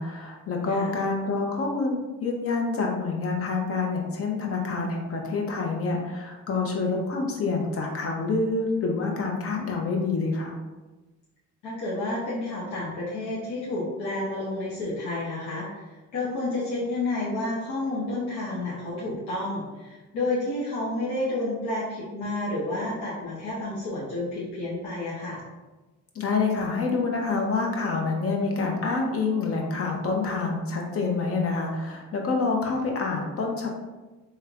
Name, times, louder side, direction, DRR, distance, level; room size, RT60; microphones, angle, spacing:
voice 1, 0.0-10.5 26.1-33.7, left 3 dB, 50° left, 1 dB, 0.8 m, -27 dB
voice 2, 11.6-15.8 16.1-25.4, left 2 dB, 85° left, -7 dB, 0.8 m, -30 dB
3.2 x 3.2 x 2.4 m, 1.2 s
cardioid pair, 90°, 30 cm